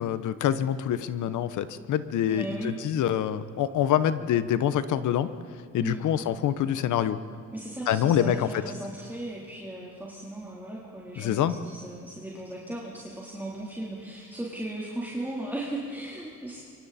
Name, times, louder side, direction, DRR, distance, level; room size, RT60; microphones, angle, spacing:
voice 1, 0.0-5.3 5.7-7.2 7.9-8.6 11.2-11.5, left 10 dB, 80° left, 13 dB, 1.1 m, -26 dB
voice 2, 2.3-2.8 5.8-6.0 7.5-16.6, right 1 dB, 5° right, -6 dB, 3.7 m, -37 dB
25.0 x 23.5 x 4.3 m, 2.2 s
cardioid pair, 90°, 30 cm